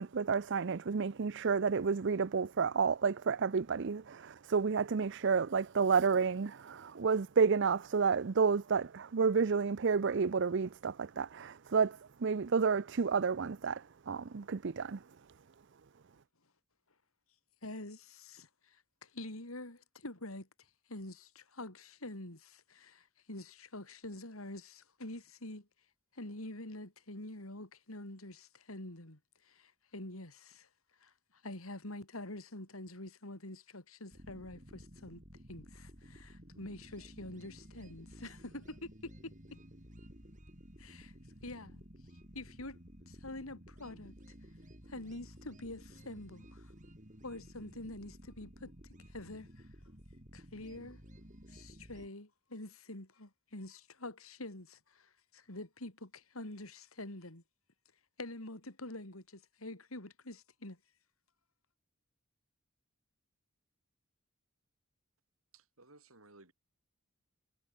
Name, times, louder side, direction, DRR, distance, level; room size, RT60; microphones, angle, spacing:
voice 1, 0.0-15.0, right 5 dB, 60° right, 0.6 m, -30 dB
voice 2, 17.6-20.5 20.9-25.7 26.1-29.2 29.4-30.7 31.0-31.1 31.4-35.2 35.5-39.6 40.8-41.1 41.4-41.8 42.3-42.8 43.1-44.1 44.9-46.7 47.2-48.7 49.1-49.7 50.3-51.0 51.5-57.4 58.2-60.8, left 1 dB, 85° left, 4.6 m, -46 dB
sound 1, 34.1-52.1, equal, 35° right, 5.3 m, -54 dB
voice 3, 65.5-66.5, right 2 dB, 85° right, 8.0 m, -59 dB
head